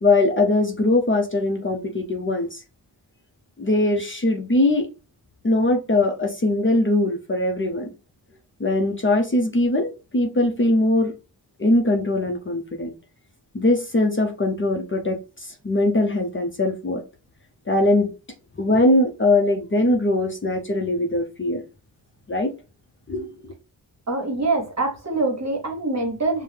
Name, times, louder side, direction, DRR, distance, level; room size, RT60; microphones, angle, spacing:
voice 1, 0.0-2.6 3.6-4.9 5.4-7.9 8.6-11.1 11.6-12.9 13.5-17.0 17.7-18.1 18.6-21.6 22.3-22.5 23.1-23.3, left 2 dB, 30° left, 0.7 m, -21 dB
voice 2, 24.1-26.4, right 3 dB, 40° right, 1.3 m, -24 dB
5.4 x 2.1 x 3.4 m
cardioid pair, 50°, 41 cm